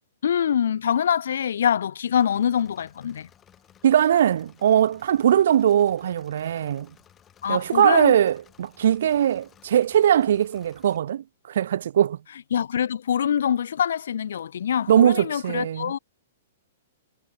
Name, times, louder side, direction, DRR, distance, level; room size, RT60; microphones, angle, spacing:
voice 1, 0.2-3.3 7.4-8.1 12.5-16.0, left 8 dB, 70° left, 3.3 m, -24 dB
Engine / Mechanisms, 2.2-11.0, left 9 dB, 15° left, 7.3 m, -57 dB
voice 2, 3.8-6.9 7.5-12.2 14.9-15.9, right 10 dB, 60° right, 0.6 m, -20 dB
hypercardioid pair, 170°, 0 cm